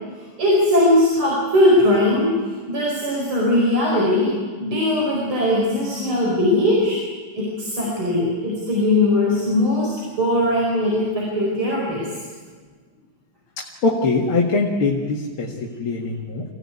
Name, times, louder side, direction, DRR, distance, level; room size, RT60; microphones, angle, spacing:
voice 1, 0.4-2.4 2.7-4.3 4.6-7.0 7.3-12.1, left 1 dB, 70° right, -3 dB, 5.9 m, -19 dB
voice 2, 13.6-16.5, left 3 dB, 75° left, -1 dB, 2.8 m, -22 dB
25.5 x 17.0 x 9.6 m, 1.5 s
omnidirectional pair, 2.4 m